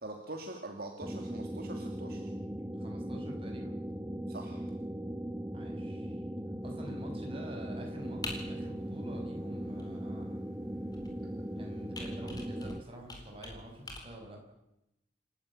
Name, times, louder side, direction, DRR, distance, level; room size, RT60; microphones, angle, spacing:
voice 1, 0.0-2.3 4.3-4.6, right 2 dB, 55° right, 2 dB, 2.4 m, -43 dB
sound 1, 1.0-12.8, right 1 dB, 10° right, 0.8 m, -39 dB
voice 2, 2.7-3.8 5.5-6.2 6.6-10.4 11.6-14.4, equal, 30° right, 1 dB, 5.8 m, -47 dB
Computer keyboard, 6.6-14.0, left 2 dB, 20° left, 4.1 m, -48 dB
28.5 x 12.5 x 8.6 m, 0.88 s
head